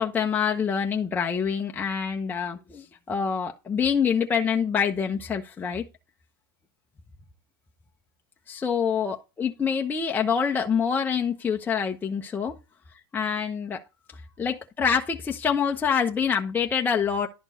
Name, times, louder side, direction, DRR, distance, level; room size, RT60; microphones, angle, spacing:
voice 1, 0.0-5.8 8.5-12.5 13.1-13.8 14.4-17.3, left 7 dB, 15° left, 0.8 m, -26 dB
11.0 x 4.4 x 4.2 m
supercardioid pair, 125°, 12 cm